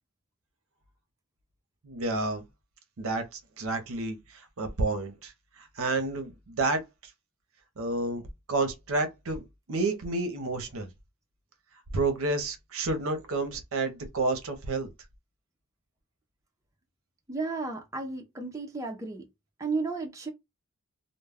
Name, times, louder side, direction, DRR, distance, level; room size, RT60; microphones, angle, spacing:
voice 1, 1.8-2.4 3.0-6.8 7.8-9.4 9.7-10.9 11.9-14.9, right 2 dB, 65° right, 0.6 m, -30 dB
voice 2, 17.3-19.2 19.6-20.3, right 3 dB, 15° right, 0.4 m, -33 dB
2.2 x 2.0 x 3.3 m
head